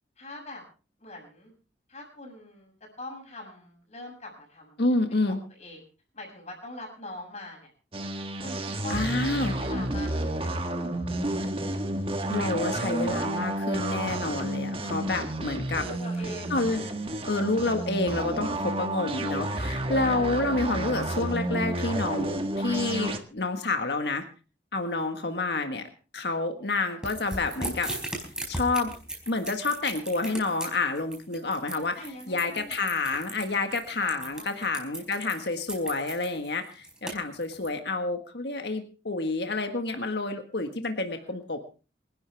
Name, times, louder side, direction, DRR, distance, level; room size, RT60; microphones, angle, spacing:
voice 1, 0.2-0.6 1.0-1.5 1.9-4.8 5.3-5.8 6.1-7.7 8.4-10.7 15.8-16.6 31.7-32.8 34.0-34.5, left 1 dB, 40° left, 1 dB, 7.2 m, -43 dB
voice 2, 4.8-5.4 8.9-9.5 12.3-15.8 16.5-16.8 17.2-24.2 24.7-27.9 28.5-28.9 29.3-41.6, left 3 dB, 65° left, 6 dB, 1.6 m, -29 dB
sound 1, 7.9-23.2, right 1 dB, 30° right, 1.5 m, -31 dB
sound 2, 27.0-37.7, right 1 dB, 5° right, 4.7 m, -37 dB
27.5 x 11.5 x 3.5 m, 0.35 s
head